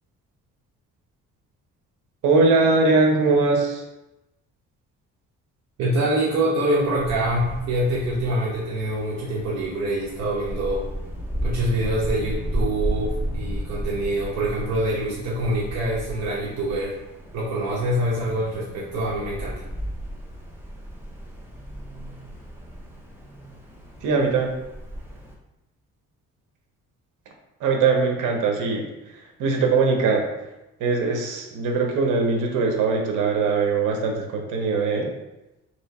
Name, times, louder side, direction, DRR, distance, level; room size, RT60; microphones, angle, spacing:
voice 1, 2.2-3.8 24.0-24.5 27.6-28.9 29.4-30.3 30.8-35.1, right 4 dB, 85° right, 2 dB, 0.9 m, -21 dB
voice 2, 5.8-10.9 11.4-17.0 17.3-19.6, right 1 dB, 60° right, -7 dB, 1.1 m, -25 dB
Wind, 6.7-25.3, equal, 5° right, 0.8 m, -34 dB
3.1 x 3.0 x 4.1 m, 0.96 s
cardioid pair, 90°, 30 cm